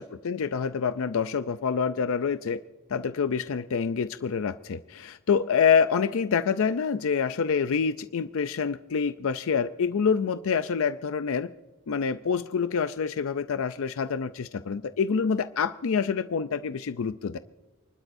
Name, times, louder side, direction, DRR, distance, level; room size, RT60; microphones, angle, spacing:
voice 1, 0.2-2.6 2.9-11.5 11.9-17.4, left 6 dB, 65° left, 11 dB, 0.4 m, -26 dB
29.0 x 12.0 x 2.6 m, 1.2 s
head